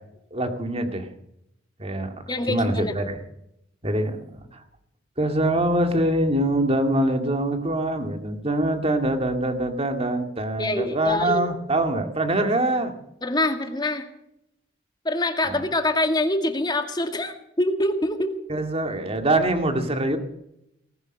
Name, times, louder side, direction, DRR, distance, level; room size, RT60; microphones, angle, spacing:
voice 1, 0.3-1.1 1.8-2.1 2.5-3.2 3.8-4.2 4.5-4.6 5.2-12.9 15.5-15.6 18.5-20.2, right 1 dB, 30° right, 6 dB, 2.1 m, -24 dB
voice 2, 2.3-3.0 10.6-11.4 13.2-14.1 15.0-18.3, left 1 dB, 25° left, 6 dB, 2.0 m, -25 dB
19.0 x 11.0 x 6.6 m, 0.81 s
head